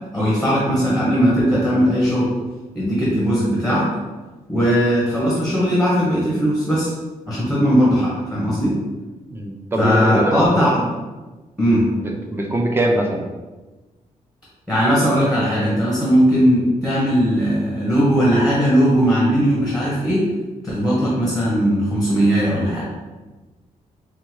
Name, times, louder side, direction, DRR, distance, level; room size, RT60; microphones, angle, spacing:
voice 1, 0.1-2.3 2.7-3.9 4.5-6.9 7.3-8.8 9.8-10.8 11.6-11.9 14.7-20.2 20.6-22.8, equal, ahead, -7 dB, 0.9 m, -18 dB
voice 2, 9.3-10.9 11.9-13.2, right 1 dB, 15° right, 1 dB, 0.5 m, -22 dB
3.7 x 3.6 x 3.1 m, 1.2 s
wide cardioid pair, 170°, 14 cm